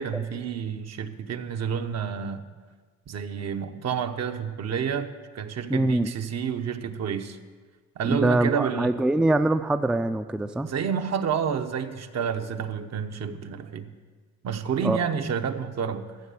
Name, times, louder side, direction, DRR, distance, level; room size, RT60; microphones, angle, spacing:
voice 1, 0.0-2.4 3.1-7.4 8.0-8.9 10.6-13.9 14.4-16.1, right 7 dB, 60° right, 7 dB, 1.0 m, -29 dB
voice 2, 5.7-6.1 8.1-10.7 14.8-15.1, right 2 dB, 5° right, 9 dB, 0.4 m, -24 dB
14.5 x 7.4 x 7.0 m, 1.5 s
cardioid pair, 90°, 30 cm